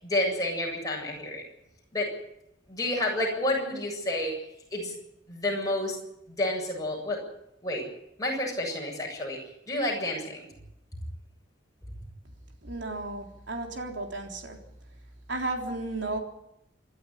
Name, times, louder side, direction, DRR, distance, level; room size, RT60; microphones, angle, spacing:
voice 1, 0.0-1.4 1.9-2.1 2.7-4.4 4.7-4.9 5.3-6.0 6.3-7.2 7.6-7.9 8.2-10.6, left 1 dB, 20° left, -2 dB, 7.9 m, -30 dB
voice 2, 12.6-14.6 15.3-16.2, right 2 dB, 65° right, 2 dB, 3.6 m, -33 dB
27.0 x 12.0 x 10.0 m, 0.82 s
head